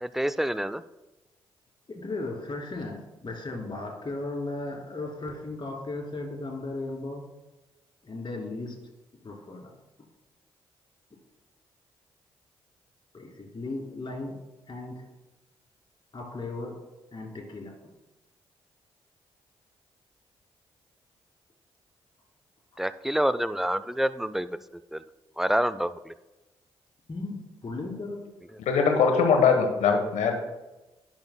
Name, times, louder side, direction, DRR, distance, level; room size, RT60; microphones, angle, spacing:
voice 1, 0.0-0.8 22.8-24.6 24.9-25.0 25.4-26.1, equal, ahead, 0.4 m, -27 dB
voice 2, 1.9-7.2 8.0-8.8 9.2-9.7 13.1-14.4 14.7-15.0 16.1-16.8 17.1-17.7 27.1-28.4, left 2 dB, 40° left, 2.5 m, -36 dB
voice 3, 28.6-30.4, left 5 dB, 70° left, 1.2 m, -21 dB
10.5 x 6.3 x 2.2 m
hypercardioid pair, 40°, 12 cm